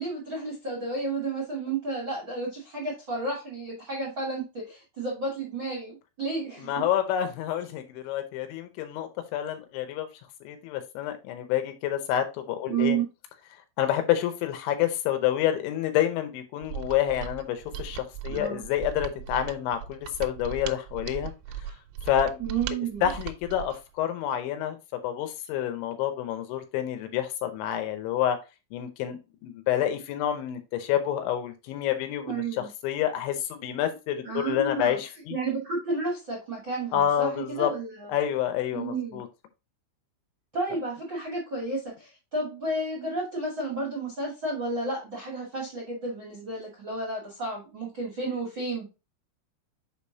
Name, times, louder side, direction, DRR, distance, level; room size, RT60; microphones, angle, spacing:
voice 1, 0.0-6.8 12.7-13.0 18.3-18.6 22.4-23.1 32.3-32.7 34.2-35.0 35.3-38.1 38.7-39.2 40.5-48.8, right 3 dB, 65° right, -4 dB, 1.1 m, -32 dB
voice 2, 6.6-10.1 10.4-13.0 13.8-21.3 21.6-21.7 22.1-22.5 23.0-28.4 28.7-32.4 32.8-35.4 36.9-37.7 38.1-39.3, left 11 dB, 80° left, 8 dB, 3.0 m, -28 dB
Mechanisms, 16.6-23.8, right 9 dB, 90° right, 3.2 m, -38 dB
6.9 x 5.2 x 2.8 m, 0.27 s
omnidirectional pair, 5.7 m